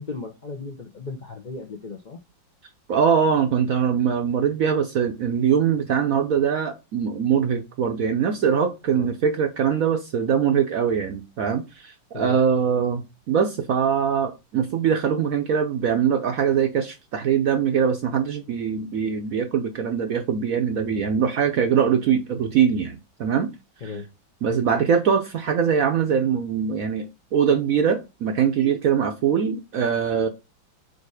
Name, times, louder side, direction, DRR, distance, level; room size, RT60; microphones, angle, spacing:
voice 1, 0.0-2.2 8.9-9.1 12.1-12.4 23.8-24.1, left 4 dB, 70° left, 0.4 m, -35 dB
voice 2, 2.9-23.5 23.8-24.0 24.4-30.3, right 7 dB, 65° right, 0.8 m, -22 dB
5.0 x 4.2 x 4.7 m
omnidirectional pair, 2.1 m